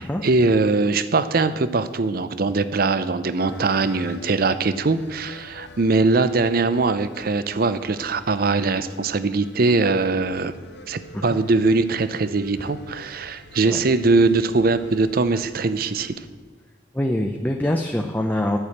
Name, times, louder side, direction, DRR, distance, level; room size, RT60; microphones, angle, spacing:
voice 1, 0.0-10.5 10.9-16.2, right 3 dB, 50° right, 13 dB, 0.6 m, -21 dB
sound 1, 3.4-16.1, left 2 dB, 65° left, 1.1 m, -46 dB
voice 2, 16.9-18.6, left 1 dB, 10° left, 3 dB, 0.5 m, -24 dB
11.0 x 6.2 x 8.6 m, 1.3 s
head